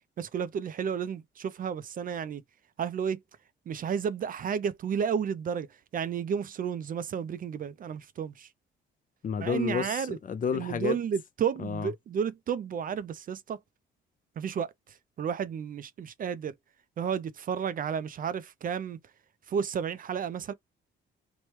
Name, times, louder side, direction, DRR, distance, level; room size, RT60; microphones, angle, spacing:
voice 1, 0.2-2.4 2.8-3.2 3.7-5.7 5.9-8.5 9.4-10.2 10.5-13.6 14.4-14.7 15.2-16.5 17.0-19.0 19.5-20.5, right 7 dB, 45° right, 0.4 m, -32 dB
voice 2, 9.2-11.0 11.6-11.9, left 6 dB, 45° left, 0.6 m, -31 dB
3.0 x 2.2 x 3.0 m
cardioid pair, 90°, 20 cm